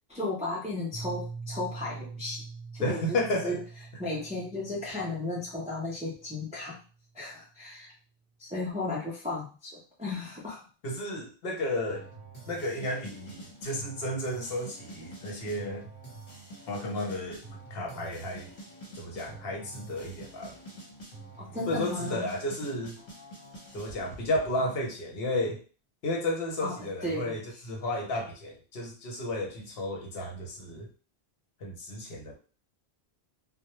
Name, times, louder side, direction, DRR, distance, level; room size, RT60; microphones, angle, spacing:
voice 1, 0.1-2.4 2.7-3.6 4.0-6.8 7.1-7.9 8.4-10.6 21.4-22.2 26.6-27.4, left 2 dB, 10° right, -4 dB, 0.3 m, -35 dB
Piano, 0.9-6.5, right 4 dB, 60° right, 0.7 m, -44 dB
voice 2, 2.8-3.6 10.8-12.1 12.5-15.9 16.7-17.4 17.7-18.5 19.0-20.6 21.7-23.0 23.7-25.6 26.0-30.9 31.6-32.4, left 1 dB, 70° left, 0 dB, 0.9 m, -32 dB
sound 1, 11.9-24.8, right 2 dB, 50° left, 1.1 m, -47 dB
2.1 x 2.1 x 2.9 m, 0.37 s
omnidirectional pair, 1.1 m